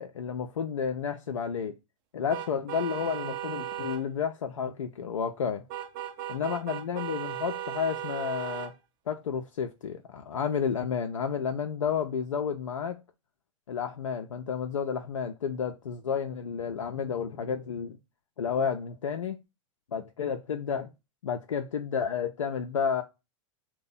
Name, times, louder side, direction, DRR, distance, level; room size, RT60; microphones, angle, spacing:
voice 1, 0.0-1.7 2.1-5.6 6.3-8.7 9.1-13.0 13.7-18.0 18.4-19.4 19.9-20.9 21.2-23.0, left 7 dB, 70° left, 0.4 m, -31 dB
sound 1, 2.3-4.0 5.7-8.7, right 11 dB, 45° right, 0.5 m, -36 dB
2.6 x 2.1 x 4.0 m
figure-of-eight pair, 95°, 17 cm